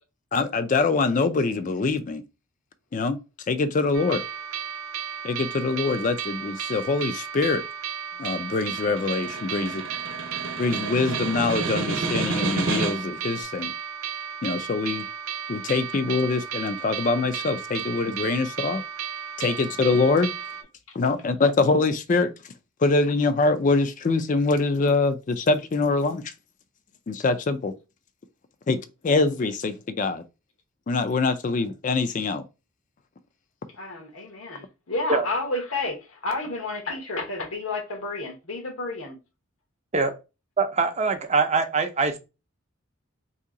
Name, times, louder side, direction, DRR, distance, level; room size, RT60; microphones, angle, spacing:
voice 1, 0.3-2.2 2.9-3.2 3.5-4.2 5.2-7.6 8.2-9.8 10.6-13.7 14.4-15.0 15.5-18.8 19.4-20.3 20.9-22.3 22.8-26.3 27.1-27.7 28.7-30.2 30.9-32.4, left 3 dB, 35° left, 0.3 m, -24 dB
sound 1, 3.9-20.6, right 8 dB, 85° right, 0.6 m, -34 dB
Snare drum, 8.3-13.2, right 3 dB, 60° right, 0.8 m, -30 dB
voice 2, 33.8-39.2, left 2 dB, 75° left, 1.0 m, -31 dB
voice 3, 40.6-42.2, right 4 dB, 30° right, 0.5 m, -23 dB
2.8 x 2.7 x 3.7 m
head